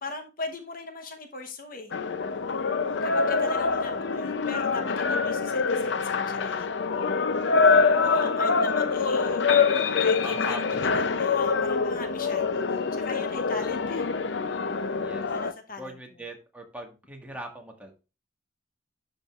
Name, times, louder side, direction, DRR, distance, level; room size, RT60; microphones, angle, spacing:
voice 1, 0.0-1.9 3.0-6.9 7.6-9.7 10.0-14.0 15.2-15.9, left 3 dB, 50° left, 0.9 m, -40 dB
sound 1, 1.9-15.5, left 4 dB, 65° left, 0.6 m, -25 dB
voice 2, 7.7-8.0 10.2-10.9 15.0-15.3 15.7-17.9, right 1 dB, 10° right, 1.6 m, -41 dB
11.5 x 5.1 x 2.4 m
head